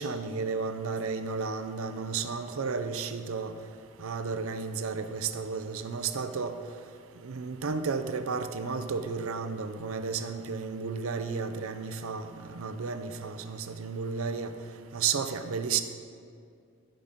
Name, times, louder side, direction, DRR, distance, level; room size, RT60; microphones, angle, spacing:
voice 1, 0.0-3.5 4.0-6.6 7.2-14.5 14.9-15.8, right 5 dB, 65° right, 10 dB, 0.5 m, -33 dB
13.0 x 5.1 x 5.2 m, 2.3 s
head